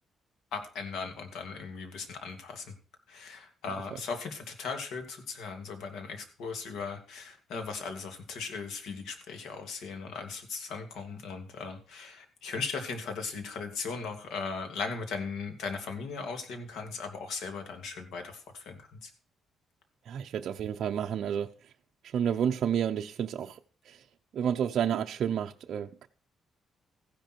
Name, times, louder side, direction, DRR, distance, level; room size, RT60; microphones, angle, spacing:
voice 1, 0.5-2.7 3.1-19.1, left 4 dB, 75° left, 2.6 m, -38 dB
voice 2, 20.1-21.5 22.1-23.6 23.9-24.0 24.3-26.1, right 8 dB, 55° right, 0.7 m, -30 dB
15.0 x 10.5 x 4.6 m
cardioid pair, 155°, 0 cm